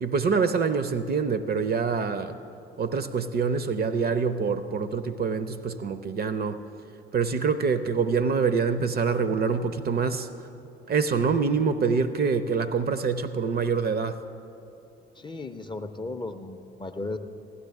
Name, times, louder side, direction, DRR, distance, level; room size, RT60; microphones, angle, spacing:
voice 1, 0.0-2.4 2.8-6.6 7.1-10.3 10.9-14.2, right 5 dB, 30° right, 12 dB, 0.6 m, -25 dB
voice 2, 15.2-17.2, left 2 dB, 15° left, 8 dB, 0.5 m, -35 dB
16.0 x 11.0 x 3.5 m, 2.7 s
figure-of-eight pair, 55°, 32 cm